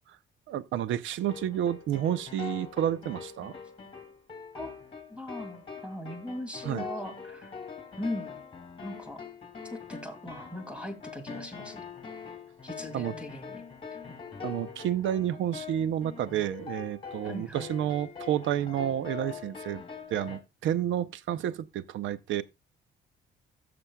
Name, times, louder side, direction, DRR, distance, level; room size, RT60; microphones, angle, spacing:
voice 1, 0.5-3.5 6.6-6.9 12.9-13.1 14.4-19.8 20.1-22.4, right 11 dB, 75° right, 0.6 m, -30 dB
sound 1, 1.2-20.4, left 6 dB, 25° left, 2.8 m, -43 dB
voice 2, 5.1-7.5 8.0-8.4 8.8-9.2 9.7-11.8 12.6-13.6 14.1-14.2 17.2-17.8, left 1 dB, 5° right, 2.2 m, -39 dB
15.5 x 6.8 x 2.2 m
cardioid pair, 90°, 20 cm